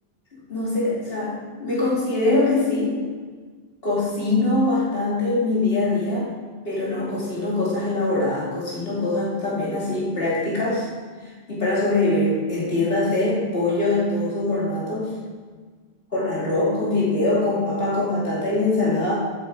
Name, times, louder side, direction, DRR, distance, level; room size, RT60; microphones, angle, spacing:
voice 1, 0.5-3.0 3.8-6.3 6.6-10.9 11.5-15.1 16.1-19.1, left 2 dB, 70° left, -7 dB, 2.8 m, -23 dB
15.0 x 6.8 x 4.7 m, 1.5 s
omnidirectional pair, 1.0 m